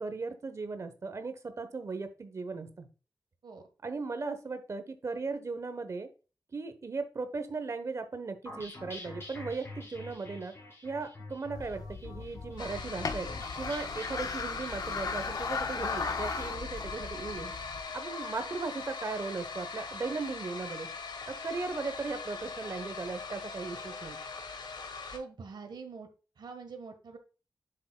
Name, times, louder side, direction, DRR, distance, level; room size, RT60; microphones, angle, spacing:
voice 1, 0.0-2.9 3.8-6.1 6.5-10.5 10.8-13.3 13.6-17.5 17.9-20.9 21.3-24.2, right 4 dB, 40° right, 10 dB, 1.0 m, -37 dB
sound 1, 8.5-17.9, left 2 dB, 30° left, 3.6 m, -47 dB
sound 2, 11.5-17.8, left 4 dB, 55° left, 0.8 m, -37 dB
sound 3, 12.6-25.2, left 4 dB, 85° left, 1.4 m, -41 dB
voice 2, 25.1-26.1 26.4-27.2, right 4 dB, 75° right, 5 dB, 1.4 m, -44 dB
7.8 x 6.7 x 2.3 m, 0.33 s
wide cardioid pair, 175°, 8 cm